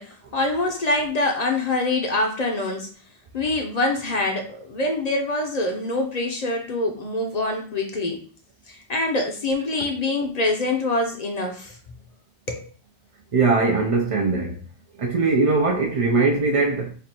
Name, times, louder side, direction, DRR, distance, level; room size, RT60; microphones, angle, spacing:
voice 1, 0.0-2.9 3.3-8.2 8.7-11.8 12.5-12.7, left 2 dB, 40° left, 0.7 m, -25 dB
voice 2, 13.3-14.6 15.0-16.9, right 3 dB, 55° right, 0.4 m, -20 dB
3.3 x 2.5 x 4.2 m
omnidirectional pair, 1.2 m